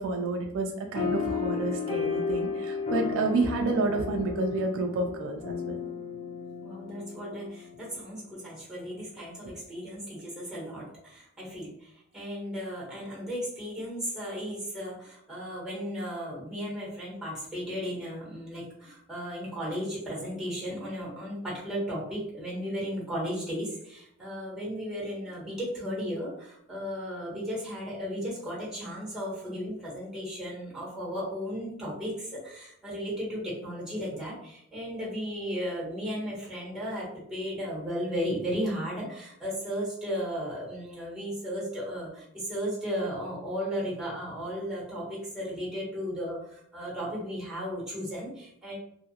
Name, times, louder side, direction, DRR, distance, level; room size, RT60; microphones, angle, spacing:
voice 1, 0.0-5.8, right 3 dB, 60° right, 3 dB, 0.3 m, -29 dB
sound 1, 1.0-7.8, left 5 dB, 25° left, 0.6 m, -33 dB
voice 2, 6.6-48.8, equal, 5° right, -5 dB, 1.1 m, -35 dB
2.7 x 2.4 x 2.7 m, 0.73 s
head